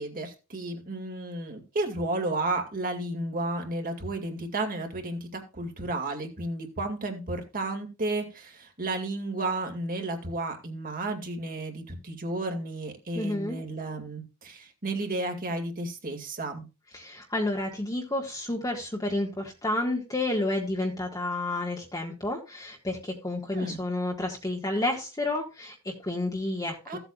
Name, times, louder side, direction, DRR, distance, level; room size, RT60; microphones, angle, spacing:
voice 1, 0.0-16.7 23.5-23.8 26.9-27.0, right 2 dB, 40° right, 4 dB, 2.4 m, -32 dB
voice 2, 13.1-13.6 16.9-27.0, left 2 dB, 15° left, 0 dB, 1.6 m, -30 dB
16.0 x 8.0 x 2.4 m, 0.28 s
head